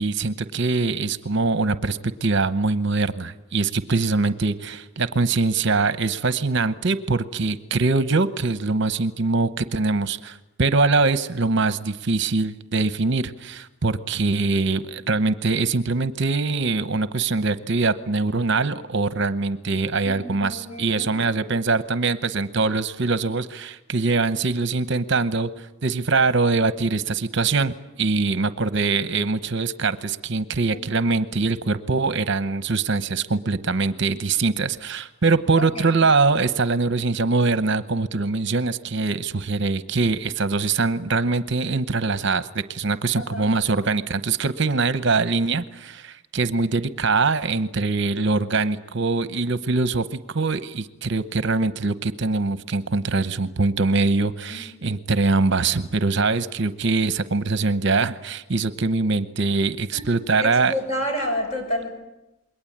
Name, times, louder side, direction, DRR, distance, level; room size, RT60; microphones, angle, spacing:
voice 1, 0.0-60.7, right 3 dB, 55° right, 12 dB, 0.9 m, -23 dB
voice 2, 20.0-21.3 30.7-31.1 35.6-35.9 43.2-43.5 54.5-54.6 59.9-60.0 60.4-61.9, equal, 30° left, 3 dB, 7.3 m, -30 dB
27.5 x 22.0 x 8.7 m, 0.96 s
head